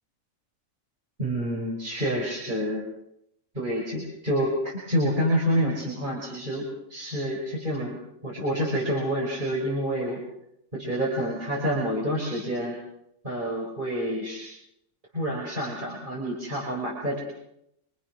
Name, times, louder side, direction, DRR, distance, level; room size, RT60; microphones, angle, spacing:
voice 1, 1.2-2.8 3.5-8.0 8.2-10.2 10.7-12.8 13.2-14.5 15.1-17.2, equal, 35° right, -3 dB, 5.5 m, -28 dB
26.5 x 25.5 x 6.2 m, 0.79 s
omnidirectional pair, 1.4 m